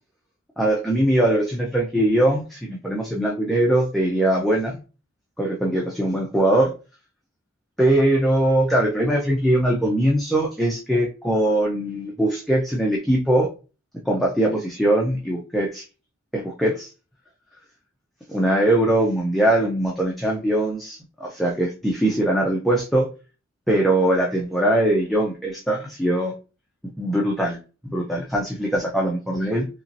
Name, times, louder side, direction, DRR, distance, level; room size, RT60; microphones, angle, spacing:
voice 1, 0.6-4.8 5.4-6.7 7.8-13.5 14.1-15.8 16.3-16.9 18.3-23.1 23.7-26.3 27.0-27.6 27.8-29.7, right 1 dB, ahead, -3 dB, 0.4 m, -21 dB
2.9 x 2.7 x 2.5 m, 0.33 s
head